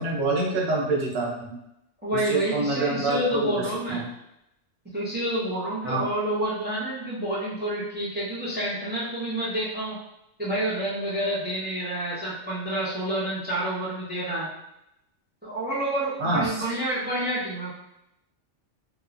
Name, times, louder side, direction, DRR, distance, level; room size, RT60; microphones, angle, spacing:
voice 1, 0.0-1.5 2.1-4.1 5.8-6.1 16.2-16.6, right 2 dB, 60° right, -3 dB, 0.9 m, -26 dB
voice 2, 2.0-4.0 4.9-10.0 10.4-14.5 15.4-17.7, right 1 dB, 15° right, -7 dB, 0.3 m, -28 dB
2.9 x 2.0 x 2.4 m, 0.85 s
omnidirectional pair, 1.3 m